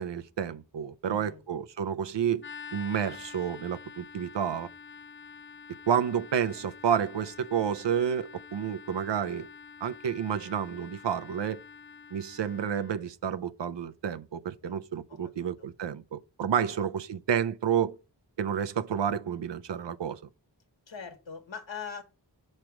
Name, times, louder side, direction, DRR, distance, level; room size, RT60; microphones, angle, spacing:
voice 1, 0.0-2.4 2.7-4.7 5.9-9.5 9.8-11.6 12.1-18.0 18.4-20.2, right 8 dB, 75° right, 0.6 m, -30 dB
voice 2, 1.0-1.4 14.6-14.8 15.1-15.7 20.9-22.0, left 6 dB, 85° left, 1.5 m, -42 dB
sound 1, 2.4-13.0, left 6 dB, 30° left, 0.4 m, -47 dB
6.1 x 3.3 x 5.8 m
wide cardioid pair, 45°, 44 cm